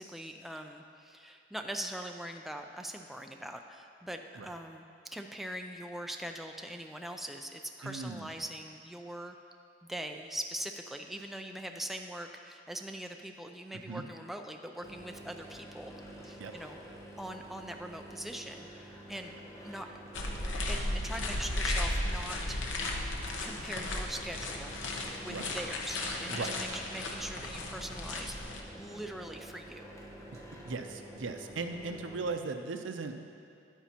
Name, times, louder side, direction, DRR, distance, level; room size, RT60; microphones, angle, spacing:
voice 1, 0.0-4.9 5.1-9.4 9.8-16.8 17.2-19.3 19.6-20.0 20.7-22.6 23.4-24.7 25.2-28.4 28.8-29.9, right 1 dB, ahead, 4 dB, 0.3 m, -42 dB
voice 2, 7.8-8.3 13.7-14.0 16.4-16.5 25.3-25.6 26.3-26.6 30.3-33.1, right 4 dB, 90° right, 6 dB, 0.6 m, -38 dB
sound 1, 14.8-32.3, equal, 15° left, 0.8 m, -49 dB
sound 2, 20.1-28.6, left 1 dB, 90° left, 0.9 m, -35 dB
10.0 x 9.1 x 2.9 m, 2.4 s
head